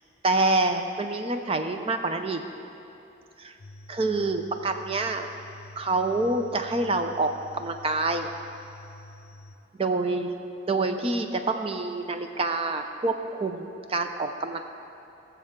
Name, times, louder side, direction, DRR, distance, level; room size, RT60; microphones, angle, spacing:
voice 1, 0.2-2.4 3.4-3.5 3.9-5.3 5.8-8.3 9.8-10.3 10.7-14.7, right 2 dB, 30° right, 6 dB, 0.5 m, -27 dB
sound 1, 3.6-9.6, left 1 dB, 50° left, 0.7 m, -48 dB
18.5 x 7.0 x 3.7 m, 2.8 s
head